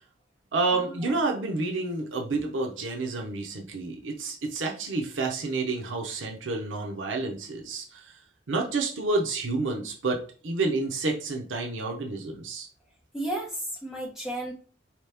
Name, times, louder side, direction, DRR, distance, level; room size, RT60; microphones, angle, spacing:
voice 1, 0.5-8.2 8.5-12.7, right 3 dB, 90° right, 1 dB, 0.7 m, -29 dB
voice 2, 13.1-14.5, right 1 dB, ahead, -3 dB, 1.2 m, -33 dB
4.0 x 3.0 x 3.4 m, 0.40 s
head